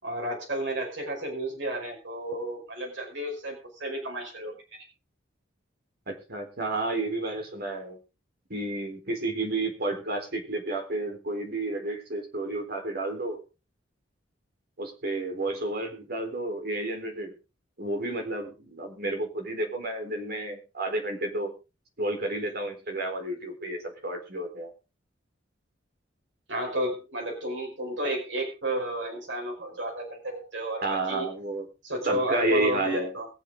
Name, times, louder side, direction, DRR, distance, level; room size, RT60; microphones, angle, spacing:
voice 1, 0.0-4.5 26.5-31.3 31.8-33.3, right 1 dB, 70° right, 1 dB, 5.4 m, -32 dB
voice 2, 6.1-8.0 8.5-13.4 14.8-17.3 17.8-21.5 22.0-24.7 30.8-31.7 32.0-33.1, right 2 dB, 55° right, 4 dB, 4.1 m, -31 dB
22.0 x 7.7 x 3.8 m, 0.30 s
head